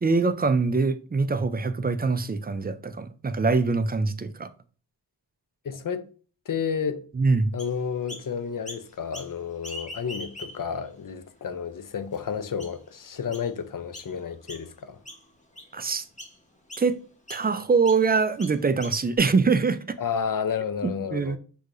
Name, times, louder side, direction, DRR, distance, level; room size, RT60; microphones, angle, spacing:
voice 1, 0.0-4.5 7.1-7.5 15.7-16.0 16.8-17.0 17.3-20.0 20.8-21.4, right 4 dB, 25° right, 0.3 m, -24 dB
voice 2, 5.6-6.1 6.5-7.0 7.5-15.0 20.0-21.4, left 7 dB, 50° left, 0.5 m, -31 dB
Chirp tweet, 7.6-8.3 8.6-9.3 9.6-10.8 11.3-11.4 12.1-12.2 12.6-12.9 13.3-13.5 13.9-14.1 14.5-14.8 15.0-15.7 16.2-16.4 16.7-16.9 17.3-17.5 17.8-18.0 18.4-19.2, left 1 dB, 15° left, 1.0 m, -42 dB
6.2 x 2.8 x 2.5 m
wide cardioid pair, 70°, 43 cm